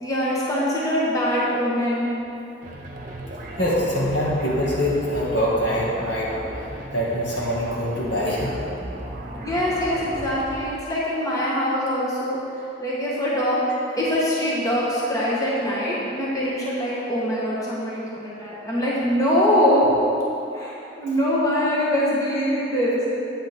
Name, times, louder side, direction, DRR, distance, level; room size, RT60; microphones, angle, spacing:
voice 1, 0.0-2.1 9.4-12.4 12.8-13.6 14.0-19.9 20.5-23.0, equal, 20° left, -6 dB, 1.4 m, -23 dB
sound 1, 2.6-10.8, right 1 dB, 45° right, 1.0 m, -36 dB
voice 2, 3.6-6.3 6.9-8.5, equal, 70° left, -6 dB, 2.1 m, -23 dB
8.6 x 8.5 x 3.6 m, 2.8 s
head